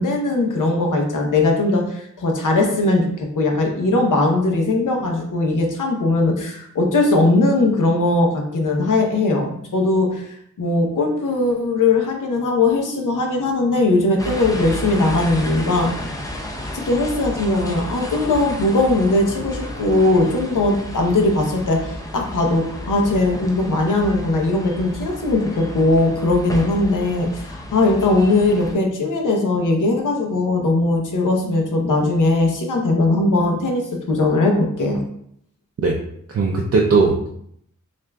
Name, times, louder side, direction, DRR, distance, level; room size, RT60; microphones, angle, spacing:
voice 1, 0.0-16.0 16.7-35.0, left 2 dB, 75° left, 2 dB, 0.8 m, -19 dB
sound 1, 14.2-28.7, left 1 dB, 10° left, 0.4 m, -32 dB
voice 2, 36.3-37.3, right 4 dB, 50° right, -1 dB, 0.5 m, -18 dB
6.4 x 2.5 x 2.2 m, 0.71 s
wide cardioid pair, 135°, 31 cm